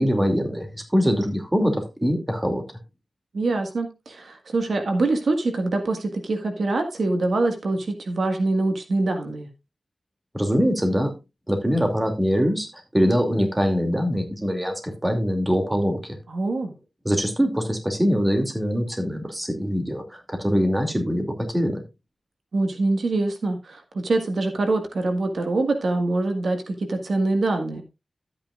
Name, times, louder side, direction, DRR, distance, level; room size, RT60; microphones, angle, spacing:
voice 1, 0.0-2.6 10.3-11.1 11.5-12.7 12.9-16.2 17.0-21.3 21.5-21.8, equal, 15° right, 4 dB, 2.5 m, -23 dB
voice 2, 3.3-9.5 16.3-16.7 22.5-27.8, right 2 dB, 80° right, 5 dB, 1.6 m, -24 dB
13.0 x 8.7 x 2.4 m, 0.25 s
wide cardioid pair, 105°, 0 cm